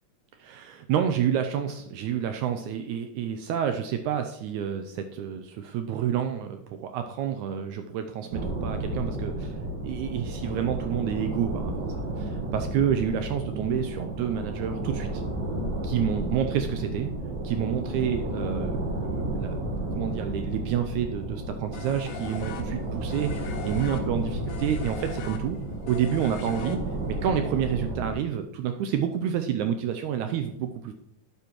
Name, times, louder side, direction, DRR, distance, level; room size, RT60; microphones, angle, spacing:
voice 1, 0.4-9.5 9.8-15.2 15.8-17.1 17.4-19.6 19.9-25.6 25.9-26.8 27.1-30.9, right 9 dB, 80° right, 7 dB, 1.8 m, -29 dB
sound 1, 8.3-28.1, right 1 dB, 60° right, 1.4 m, -32 dB
sound 2, 21.7-27.2, left 7 dB, 75° left, 2.3 m, -41 dB
12.0 x 6.9 x 3.0 m, 0.79 s
omnidirectional pair, 3.8 m